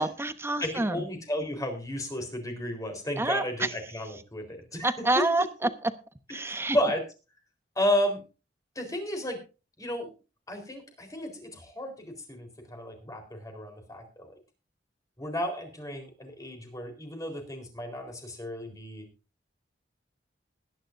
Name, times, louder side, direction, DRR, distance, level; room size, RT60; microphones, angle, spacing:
voice 1, 0.0-1.0 3.2-3.7 4.8-5.9 6.3-6.8, right 2 dB, 15° right, 11 dB, 0.9 m, -28 dB
voice 2, 0.6-5.2 6.3-7.0 7.8-8.2 8.8-9.4 9.8-10.1 10.5-14.3 15.2-19.1, left 1 dB, 20° left, 4 dB, 4.1 m, -33 dB
21.0 x 11.0 x 2.6 m, 0.32 s
head